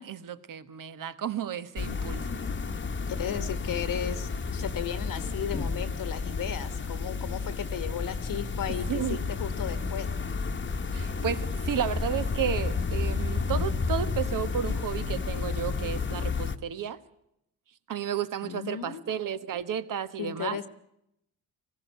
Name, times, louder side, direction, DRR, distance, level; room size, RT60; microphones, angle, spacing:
voice 1, 0.0-2.4 8.9-9.2 10.9-17.0 17.9-20.6, right 8 dB, 60° right, 12 dB, 1.4 m, -32 dB
sound 1, 1.8-16.6, left 4 dB, 30° left, 1.2 m, -31 dB
voice 2, 3.1-10.1 18.4-19.0 20.2-20.7, left 8 dB, 65° left, 12 dB, 1.3 m, -35 dB
20.0 x 15.5 x 9.4 m, 0.79 s
cardioid pair, 80°, 36 cm